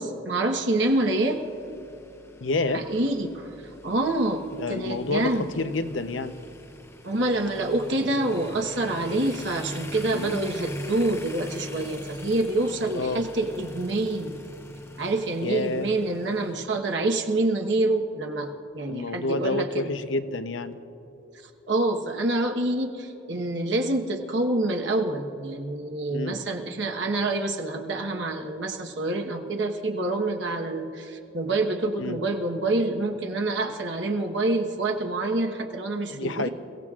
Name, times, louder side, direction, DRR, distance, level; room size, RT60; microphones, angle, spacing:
voice 1, 0.0-1.4 2.7-3.5 3.8-4.4 4.7-5.5 7.0-14.4 15.0-18.5 18.7-19.9 21.7-36.5, right 2 dB, 65° right, 2 dB, 1.2 m, -26 dB
sound 1, 0.8-16.7, left 1 dB, 15° left, 0.6 m, -43 dB
voice 2, 2.4-2.8 4.6-6.3 10.1-10.4 12.9-13.2 15.4-15.9 18.8-20.8 26.1-26.4 32.0-32.2 36.1-36.5, left 3 dB, 80° left, 10 dB, 0.8 m, -29 dB
29.5 x 16.5 x 2.5 m, 2.9 s
head